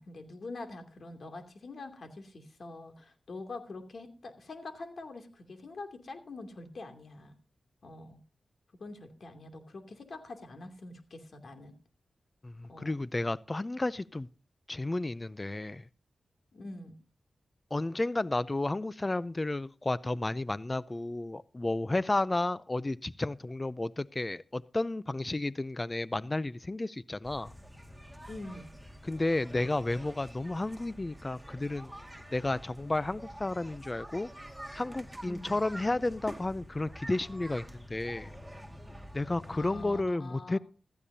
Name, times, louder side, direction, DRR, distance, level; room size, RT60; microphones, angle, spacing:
voice 1, 0.0-7.3 7.8-8.2 8.8-11.7 12.7-12.9 16.5-16.9 28.2-28.7 35.2-35.6 39.5-40.6, left 2 dB, 65° left, 2.7 m, -45 dB
voice 2, 12.4-14.3 14.7-15.9 17.7-27.5 29.0-31.9 32.3-34.3 34.7-38.3 39.1-40.6, left 2 dB, 30° left, 0.5 m, -32 dB
sound 1, 27.2-40.0, equal, 5° right, 2.0 m, -47 dB
15.0 x 14.0 x 2.8 m
cardioid pair, 50°, 0 cm